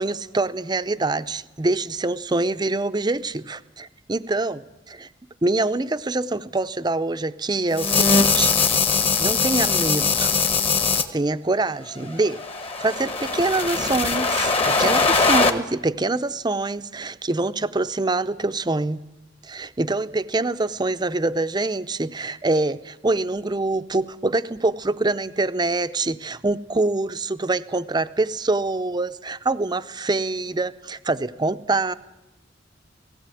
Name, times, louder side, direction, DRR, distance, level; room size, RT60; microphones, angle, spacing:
voice 1, 0.0-4.6 4.9-5.1 5.4-8.5 9.2-10.3 11.1-12.4 12.8-19.0 19.4-31.9, right 2 dB, 25° right, 11 dB, 0.6 m, -25 dB
sound 1, 7.7-11.0 12.2-15.5, left 4 dB, 30° left, 1.3 m, -21 dB
17.5 x 17.0 x 9.2 m, 0.99 s
head